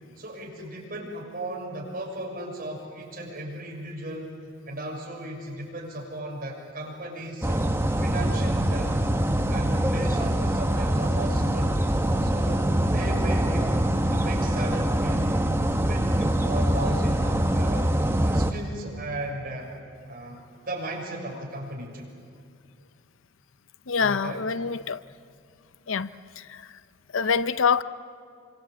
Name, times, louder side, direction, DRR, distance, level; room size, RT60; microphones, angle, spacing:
voice 1, 0.2-4.4 4.7-7.6 8.0-9.0 9.5-11.8 12.2-17.8 18.2-19.7 20.1-22.1 24.0-24.4, right 1 dB, 45° right, -1 dB, 6.4 m, -36 dB
sound 1, 7.4-18.5, right 1 dB, 10° right, 0.9 m, -24 dB
voice 2, 23.9-25.0 25.9-26.1 26.4-26.6 27.1-27.8, left 5 dB, 70° left, 14 dB, 0.6 m, -25 dB
26.0 x 25.5 x 8.2 m, 2.3 s
head